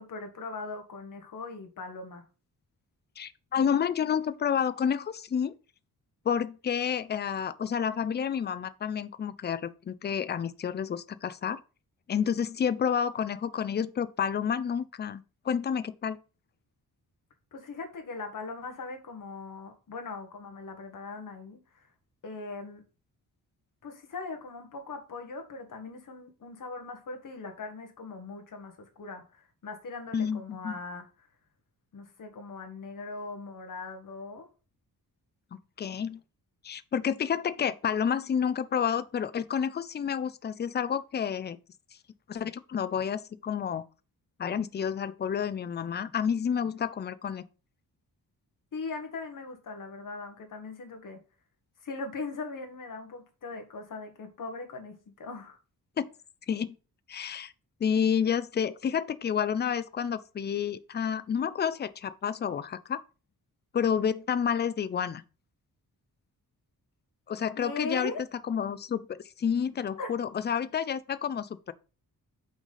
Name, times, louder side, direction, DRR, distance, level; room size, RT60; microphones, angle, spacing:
voice 1, 0.0-2.2 17.5-21.9 22.2-22.8 23.8-31.3 31.9-34.5 48.7-51.2 51.8-55.6 67.6-68.2 70.0-70.1, left 3 dB, 60° left, 1.5 m, -40 dB
voice 2, 3.2-5.5 6.3-11.6 12.1-16.2 30.1-30.8 35.5-36.2 36.6-41.6 42.3-43.8 44.4-47.4 56.0-56.1 56.5-56.7 57.1-57.5 57.8-63.0 63.7-65.2 67.3-68.1 68.5-71.7, left 7 dB, 30° left, 0.4 m, -30 dB
6.0 x 4.1 x 5.5 m
wide cardioid pair, 175°, 36 cm